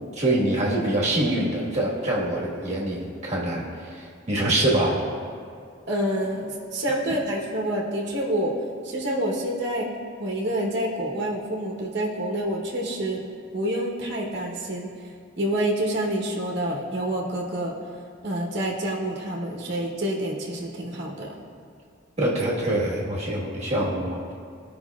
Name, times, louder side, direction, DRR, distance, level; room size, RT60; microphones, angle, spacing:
voice 1, 0.2-3.6 4.3-4.9 22.2-24.3, right 1 dB, 35° right, -5 dB, 1.4 m, -24 dB
voice 2, 5.9-8.6 8.8-9.9 10.2-13.2 13.5-14.9 15.4-17.7 18.2-21.4, right 1 dB, 55° right, -2 dB, 1.0 m, -27 dB
14.5 x 5.2 x 2.3 m, 2.2 s
head